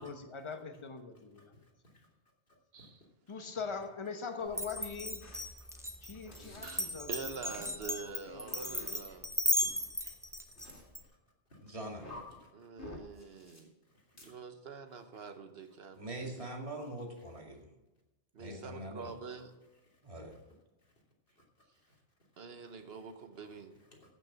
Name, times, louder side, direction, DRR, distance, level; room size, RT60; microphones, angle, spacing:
voice 1, 0.0-1.5 3.3-5.2 6.0-7.1 8.0-8.6, left 5 dB, 30° left, 6 dB, 1.1 m, -42 dB
voice 2, 1.3-2.1 2.8-2.9 5.3-6.6 9.1-9.2 9.6-10.1 11.5-11.8 12.1-12.5 13.9-14.3 15.0-15.1 16.8-16.9 21.4-21.5 21.8-22.0 23.4-23.5 23.9-24.0, left 2 dB, 50° left, -2 dB, 2.9 m, -55 dB
Glass, 4.5-11.0, equal, 5° right, 0.8 m, -35 dB
sound 1, 5.2-5.4 6.3-6.8 7.5-7.7 8.5-8.9 10.5-10.8 11.9-12.2 12.8-13.6 14.2-14.3, left 1 dB, 75° left, 2.9 m, -50 dB
voice 3, 6.6-9.3 12.5-13.7 14.2-16.5 18.3-19.5 22.4-23.8, right 5 dB, 60° right, 8 dB, 1.3 m, -46 dB
voice 4, 11.6-12.1 16.0-17.7 18.4-19.1 20.0-20.3, right 1 dB, 30° right, 1 dB, 2.1 m, -43 dB
15.5 x 6.1 x 5.9 m, 1.0 s
omnidirectional pair, 1.2 m